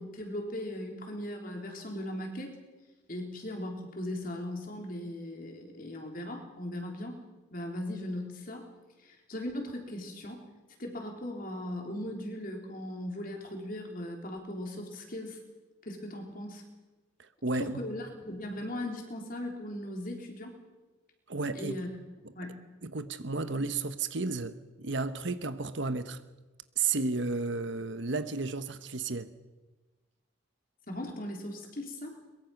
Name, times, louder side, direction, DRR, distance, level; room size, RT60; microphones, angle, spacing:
voice 1, 0.0-2.6 3.1-7.2 7.5-8.7 9.0-10.4 10.8-15.4 15.8-16.6 17.6-20.6 21.5-21.9 22.4-22.6 30.9-32.2, left 1 dB, 45° left, 3.8 m, -38 dB
voice 2, 17.2-17.8 21.3-21.7 22.8-26.2 26.8-29.3, right 3 dB, 60° right, 1.1 m, -32 dB
22.5 x 22.5 x 6.0 m
head